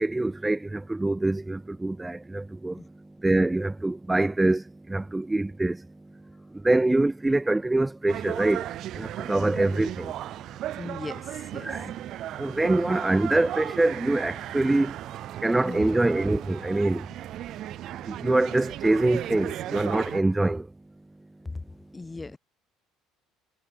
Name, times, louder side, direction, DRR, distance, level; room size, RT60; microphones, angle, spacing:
voice 1, 0.0-10.7 11.6-11.9 12.4-17.2 18.0-20.7, right 2 dB, 15° right, 1.9 m, -25 dB
sound 1, 8.1-20.2, right 13 dB, 60° right, 1.1 m, -36 dB
voice 2, 10.8-11.7 15.5-15.9 21.4-21.6 21.9-22.4, left 3 dB, 20° left, 4.8 m, -38 dB
hypercardioid pair, 65°, 0 cm